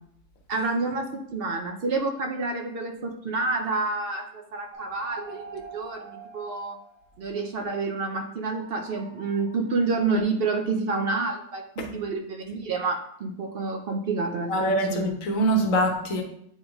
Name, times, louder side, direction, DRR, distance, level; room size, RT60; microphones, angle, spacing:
voice 1, 0.5-6.8 7.2-15.1, right 3 dB, 55° right, 4 dB, 0.8 m, -29 dB
sound 1, 4.7-7.3 8.5-9.8, right 3 dB, 75° right, 1.3 m, -44 dB
voice 2, 14.5-16.2, right 1 dB, 90° left, 2 dB, 1.4 m, -24 dB
8.8 x 3.4 x 3.5 m, 0.71 s
omnidirectional pair, 1.3 m